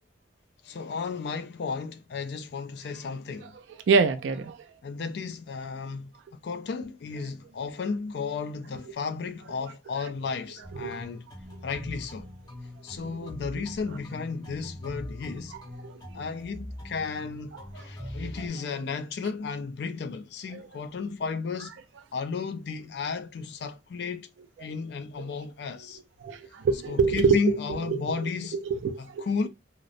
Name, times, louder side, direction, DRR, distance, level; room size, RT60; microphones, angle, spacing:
voice 1, 0.6-3.6 4.8-6.1 6.4-11.3 11.6-12.3 12.8-15.5 16.1-21.7 22.1-24.3 24.6-26.0 26.9-28.6 29.0-29.5, left 5 dB, 60° left, 0.3 m, -33 dB
voice 2, 3.9-4.6 10.8-11.0 13.2-13.3 13.5-13.6 15.8-16.0 17.7-18.1 20.5-20.7 26.2-27.4 27.9-28.0 28.6-29.3, right 5 dB, 75° right, 0.3 m, -25 dB
sound 1, 10.6-18.5, left 1 dB, 20° left, 0.8 m, -42 dB
2.8 x 2.0 x 2.4 m
head